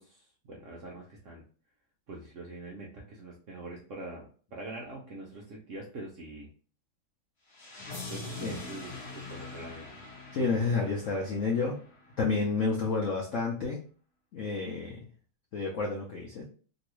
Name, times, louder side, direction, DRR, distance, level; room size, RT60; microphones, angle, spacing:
voice 1, 0.0-1.4 2.1-6.5 8.1-9.9 10.3-10.5 11.5-11.8, right 2 dB, 85° right, -2 dB, 0.6 m, -44 dB
sound 1, 7.5-12.4, left 3 dB, 40° left, 1.2 m, -43 dB
voice 2, 10.3-11.8 12.2-13.8 14.3-15.0 15.5-16.4, left 4 dB, 70° left, -2 dB, 0.7 m, -30 dB
3.0 x 2.7 x 3.0 m, 0.41 s
omnidirectional pair, 2.1 m